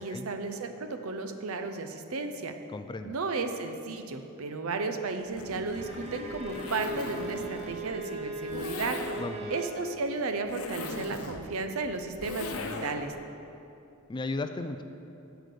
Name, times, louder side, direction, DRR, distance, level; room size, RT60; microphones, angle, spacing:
voice 1, 0.0-2.5 3.0-9.0 9.5-12.6 12.8-13.1, right 3 dB, 75° right, 7 dB, 0.6 m, -34 dB
voice 2, 2.7-3.1 9.2-9.5 12.6-12.8 14.1-14.8, left 3 dB, 20° left, 9 dB, 0.3 m, -35 dB
Zipper (clothing), 5.2-13.2, left 3 dB, 85° left, 0.7 m, -40 dB
Bowed string instrument, 5.7-9.8, right 2 dB, 30° right, 0.9 m, -38 dB
7.7 x 5.1 x 6.5 m, 2.7 s
head